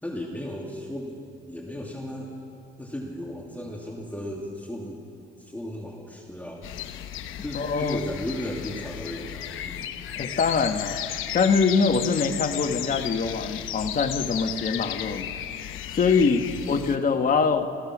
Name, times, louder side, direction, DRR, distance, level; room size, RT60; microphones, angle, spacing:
voice 1, 0.0-1.2 1.5-2.3 2.8-5.0 5.4-6.7 7.4-9.9 16.4-16.7, left 1 dB, 10° left, -1 dB, 2.5 m, -35 dB
sound 1, 6.6-17.0, left 11 dB, 85° left, 1.0 m, -34 dB
voice 2, 7.5-8.0 10.2-11.0 11.3-15.3 15.9-17.7, left 5 dB, 45° left, 6 dB, 1.5 m, -24 dB
29.0 x 15.5 x 6.1 m, 2.5 s
cardioid pair, 90°, 20 cm